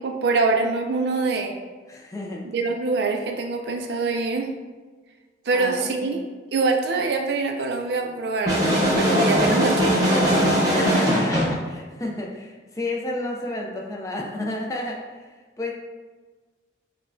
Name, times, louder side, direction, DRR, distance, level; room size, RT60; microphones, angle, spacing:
voice 1, 0.0-1.6 2.4-4.5 5.5-6.2 6.5-10.2, right 3 dB, 65° right, 3 dB, 0.4 m, -24 dB
voice 2, 1.9-2.4 5.5-6.2 10.7-15.7, left 1 dB, 20° left, -1 dB, 0.4 m, -32 dB
sound 1, 8.5-11.6, equal, 20° right, 0.9 m, -20 dB
5.3 x 2.2 x 2.6 m, 1.3 s
head